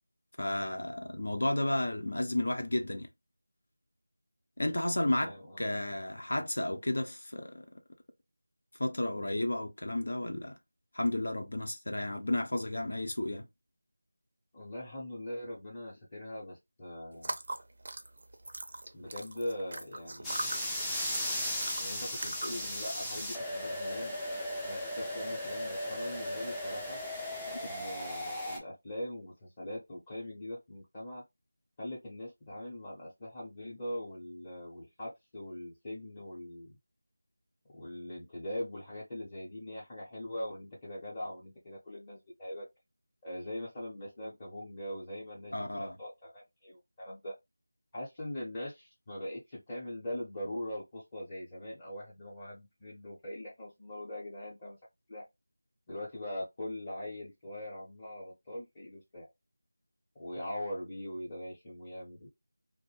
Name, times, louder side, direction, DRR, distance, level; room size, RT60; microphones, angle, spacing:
voice 1, 0.4-3.1 4.6-7.7 8.8-10.6 10.9-13.5 45.5-45.9, left 1 dB, 65° left, 0.7 m, -32 dB
voice 2, 5.2-6.0 14.5-17.3 18.9-20.6 21.8-24.2 24.6-27.0 27.6-31.2 31.8-36.8 37.7-42.7 43.2-47.3 47.9-54.8 55.1-55.2 55.9-59.3 60.2-62.3, left 1 dB, 20° left, 0.8 m, -41 dB
sound 1, 17.1-22.7, right 2 dB, 50° right, 0.5 m, -41 dB
sound 2, 20.2-28.6, left 1 dB, 5° left, 0.4 m, -36 dB
2.5 x 2.1 x 3.1 m
figure-of-eight pair, 170°, 0 cm